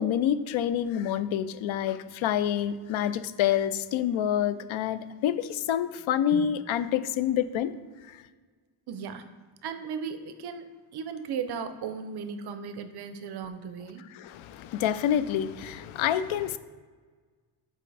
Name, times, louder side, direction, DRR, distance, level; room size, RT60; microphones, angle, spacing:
voice 1, 0.0-7.7 8.1-8.2 14.1-16.6, left 10 dB, 85° left, 14 dB, 0.5 m, -27 dB
voice 2, 8.9-9.2 9.6-14.1, right 6 dB, 55° right, 9 dB, 0.5 m, -36 dB
7.6 x 4.8 x 3.3 m, 1.5 s
wide cardioid pair, 180°, 46 cm